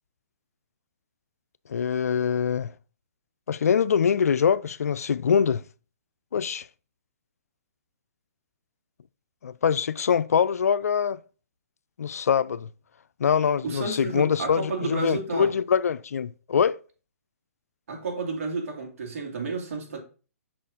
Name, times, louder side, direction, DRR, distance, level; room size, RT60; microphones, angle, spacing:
voice 1, 1.7-2.7 3.5-5.6 6.3-6.7 9.4-11.2 12.0-12.7 13.2-16.8, left 7 dB, 85° left, 0.3 m, -24 dB
voice 2, 13.6-15.5 17.9-20.0, right 3 dB, 65° right, 2.3 m, -31 dB
6.2 x 4.2 x 3.8 m
hypercardioid pair, 145°, 8 cm